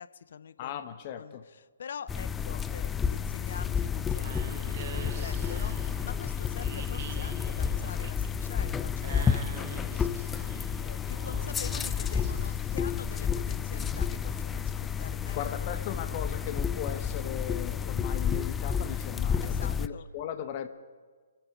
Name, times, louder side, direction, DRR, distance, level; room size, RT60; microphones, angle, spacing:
voice 1, 0.0-0.8 1.2-1.4 1.8-10.0 10.8-15.8 19.4-20.1, left 7 dB, 60° left, 16 dB, 0.6 m, -45 dB
voice 2, 0.6-1.4 15.4-20.7, left 9 dB, 40° left, 9 dB, 1.0 m, -38 dB
sound 1, 2.1-19.9, left 7 dB, 10° left, 0.4 m, -31 dB
sound 2, 3.8-12.8, right 9 dB, 45° right, 0.5 m, -46 dB
24.5 x 8.9 x 4.9 m, 1.5 s
figure-of-eight pair, 130°, 0 cm